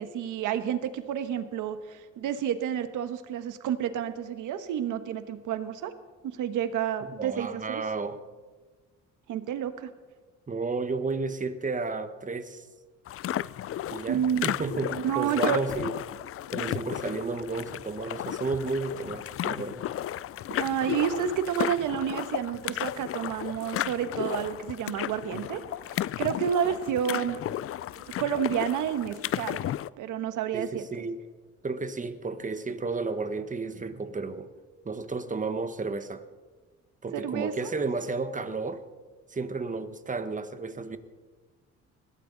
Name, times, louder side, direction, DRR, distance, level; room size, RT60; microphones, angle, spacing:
voice 1, 0.0-5.9 6.2-7.8 9.3-9.9 14.1-15.6 20.6-25.6 25.9-27.4 28.2-29.7 30.0-30.9 37.1-37.7, right 9 dB, 85° right, 10 dB, 1.4 m, -30 dB
voice 2, 7.1-8.2 10.5-12.7 13.9-16.0 16.5-19.8 30.5-31.2 31.6-34.5 34.8-36.2 37.0-38.8 39.3-41.0, right 3 dB, 25° right, 10 dB, 1.3 m, -32 dB
sound 1, 13.1-29.9, left 12 dB, 50° left, 0.4 m, -34 dB
21.0 x 16.5 x 4.0 m, 1.3 s
cardioid pair, 90°, 30 cm